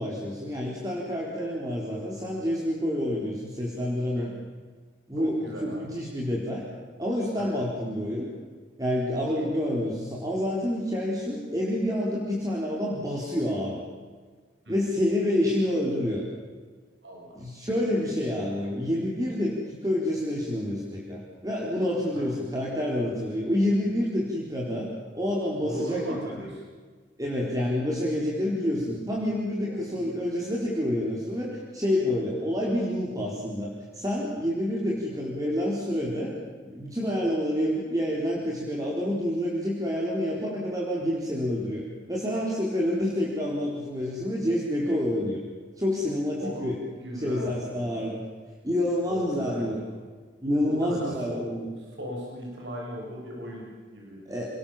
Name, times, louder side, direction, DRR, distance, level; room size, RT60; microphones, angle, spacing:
voice 1, 0.0-4.3 5.1-6.7 7.0-8.3 8.8-13.8 14.7-16.2 17.3-24.9 25.1-26.2 27.2-36.3 36.6-45.4 45.8-46.8 47.2-48.2 48.6-49.8 50.4-51.7 54.3-54.5, left 1 dB, 20° right, -3 dB, 4.2 m, -28 dB
voice 2, 5.2-5.9 7.3-7.6 9.2-9.5 14.7-14.9 17.0-17.4 22.1-22.3 25.6-26.6 29.6-30.3 34.4-34.5 46.4-46.6 47.0-48.1 49.1-49.9 50.6-54.2, equal, 80° right, -1 dB, 7.4 m, -38 dB
28.5 x 20.0 x 7.3 m, 1.5 s
head